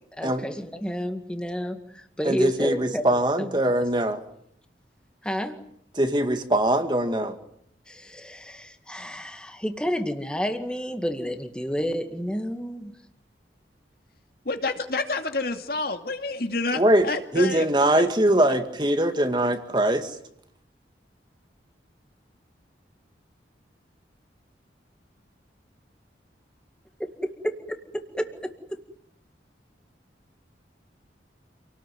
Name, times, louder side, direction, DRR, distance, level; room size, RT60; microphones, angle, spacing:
voice 1, 0.2-3.0 3.4-3.5 5.2-5.6 7.9-12.9 27.2-27.5 27.9-28.8, equal, 5° left, 6 dB, 2.1 m, -30 dB
voice 2, 2.2-4.2 5.9-7.4 16.8-17.1 17.3-20.1, right 1 dB, 25° right, 7 dB, 2.0 m, -22 dB
voice 3, 14.5-17.7 17.9-18.0 18.5-18.6, left 3 dB, 55° left, 6 dB, 2.6 m, -29 dB
28.0 x 19.0 x 9.5 m, 0.72 s
head